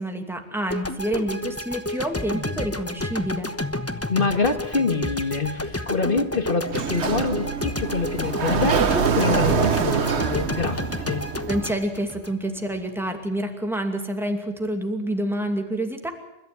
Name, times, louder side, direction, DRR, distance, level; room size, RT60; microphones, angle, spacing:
voice 1, 0.0-3.5 11.5-16.1, right 1 dB, ahead, 4 dB, 2.5 m, -28 dB
sound 1, 0.7-12.9, left 1 dB, 15° left, 1.1 m, -30 dB
voice 2, 4.1-11.3, left 4 dB, 55° left, 7 dB, 1.9 m, -26 dB
Sliding door, 6.7-11.7, right 6 dB, 85° right, 1.4 m, -25 dB
30.0 x 14.0 x 9.4 m, 0.94 s
omnidirectional pair, 1.1 m